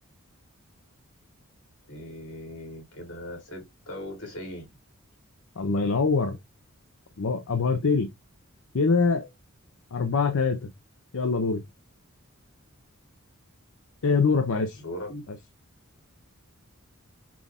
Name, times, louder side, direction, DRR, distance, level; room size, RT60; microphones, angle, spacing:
voice 1, 1.9-4.7 14.8-15.3, left 1 dB, 85° left, 3.0 m, -39 dB
voice 2, 5.6-6.4 7.2-8.1 8.7-9.3 9.9-10.6 11.1-11.6 14.0-14.8, left 4 dB, 65° left, 0.6 m, -24 dB
6.0 x 2.4 x 3.5 m
head